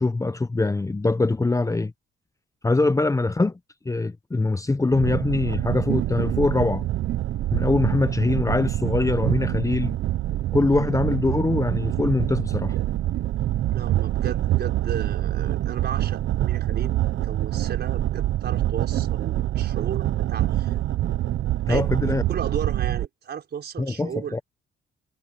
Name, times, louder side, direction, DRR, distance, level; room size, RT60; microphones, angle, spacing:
voice 1, 0.0-1.9 2.6-3.6 3.8-6.8 7.5-10.0 10.5-12.8 21.7-22.2 23.8-24.4, left 3 dB, 15° left, 0.9 m, -23 dB
sound 1, 4.9-23.1, right 14 dB, 70° right, 0.9 m, -25 dB
voice 2, 13.7-20.8 21.7-21.9 22.3-24.4, right 8 dB, 55° right, 5.2 m, -35 dB
cardioid pair, 90°, 20 cm